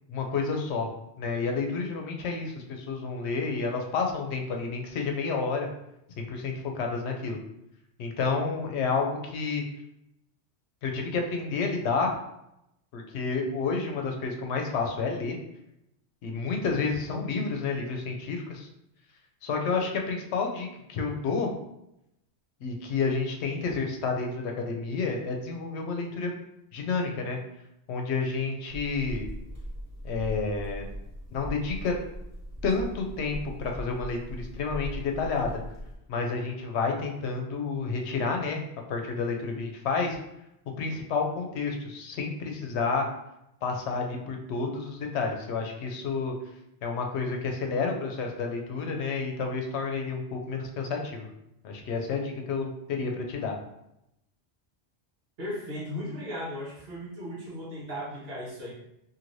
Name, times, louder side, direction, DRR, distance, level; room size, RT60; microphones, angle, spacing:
voice 1, 0.1-0.9 1.2-5.7 6.2-7.4 8.0-9.6 10.8-12.1 12.9-15.4 16.2-18.7 19.4-21.5 22.6-26.3 26.7-27.4 27.9-29.3 30.0-30.9 31.3-31.9 32.6-35.5 36.1-38.6 38.9-40.2 40.8-43.0 43.6-46.3 46.8-51.3 51.6-53.5, left 4 dB, 80° left, 2 dB, 0.9 m, -30 dB
sound 1, 28.7-36.0, equal, 15° right, 1.0 m, -39 dB
voice 2, 55.4-58.7, equal, 65° right, -5 dB, 1.2 m, -36 dB
3.0 x 2.7 x 2.6 m, 0.83 s
omnidirectional pair, 1.1 m